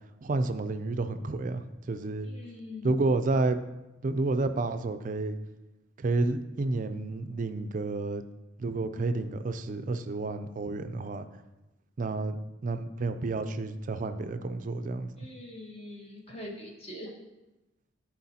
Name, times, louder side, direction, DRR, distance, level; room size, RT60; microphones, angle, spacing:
voice 1, 0.2-2.3 2.8-3.6 4.0-5.4 6.0-8.2 8.6-11.3 12.0-15.1, right 3 dB, 45° right, 10 dB, 0.4 m, -30 dB
voice 2, 2.2-3.0 15.2-17.1, left 1 dB, 30° left, -1 dB, 1.2 m, -43 dB
11.5 x 4.4 x 2.8 m, 1.0 s
head